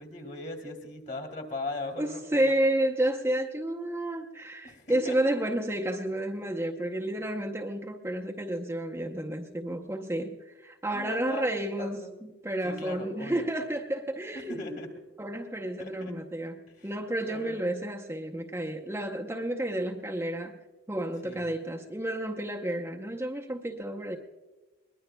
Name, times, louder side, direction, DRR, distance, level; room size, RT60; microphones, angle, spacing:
voice 1, 0.0-2.4 4.6-5.5 10.9-12.1 12.6-13.5 14.5-14.9 15.8-16.1 16.8-16.9 17.2-17.6 21.2-21.5, left 2 dB, 40° left, 3 dB, 2.3 m, -39 dB
voice 2, 2.0-14.8 15.2-20.6 20.9-24.2, right 1 dB, 15° right, 1 dB, 0.7 m, -31 dB
22.0 x 20.0 x 2.3 m, 1.2 s
head